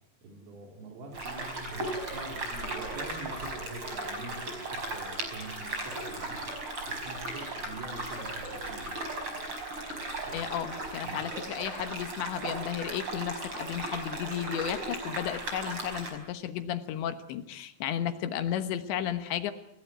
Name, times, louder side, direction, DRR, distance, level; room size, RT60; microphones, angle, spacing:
voice 1, 0.2-6.4 6.9-9.0 10.3-10.5 11.0-11.3, right 3 dB, 85° right, 1 dB, 6.3 m, -45 dB
sound 1, 1.1-16.1, right 2 dB, 25° right, 5.6 m, -37 dB
voice 2, 10.3-19.5, left 10 dB, 75° left, 9 dB, 3.3 m, -33 dB
29.5 x 17.5 x 9.3 m, 0.78 s
omnidirectional pair, 5.5 m